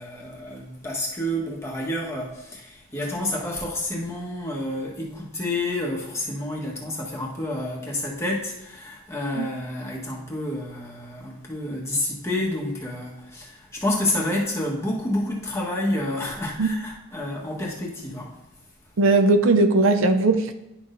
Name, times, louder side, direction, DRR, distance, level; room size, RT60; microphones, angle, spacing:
voice 1, 0.0-18.4, left 1 dB, 15° left, 1.3 m, -29 dB
voice 2, 19.0-20.5, right 2 dB, 75° right, 0.5 m, -18 dB
10.5 x 6.1 x 2.6 m
head